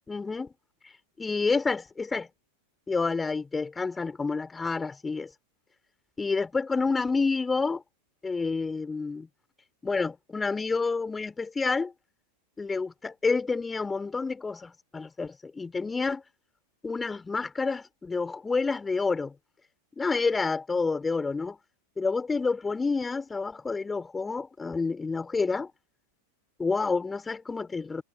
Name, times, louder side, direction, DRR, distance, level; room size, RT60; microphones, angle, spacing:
voice 1, 0.1-0.5 1.2-2.3 2.9-5.3 6.2-7.8 8.2-9.3 9.8-11.9 12.6-16.2 16.8-19.3 20.0-21.6 22.0-25.7 26.6-28.0, left 4 dB, 10° left, 5.2 m, -29 dB
figure-of-eight pair, 90°, 0 cm